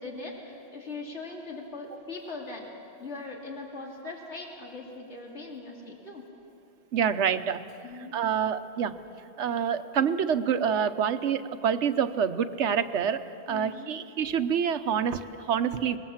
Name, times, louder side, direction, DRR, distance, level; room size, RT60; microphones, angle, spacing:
voice 1, 0.0-2.7 3.0-6.2 7.8-8.2 13.5-13.9, left 3 dB, 80° left, -1 dB, 3.1 m, -40 dB
voice 2, 6.9-7.6 8.1-9.0 9.4-16.0, right 7 dB, 85° right, 11 dB, 1.2 m, -27 dB
25.5 x 21.0 x 7.3 m, 2.7 s
omnidirectional pair, 1.2 m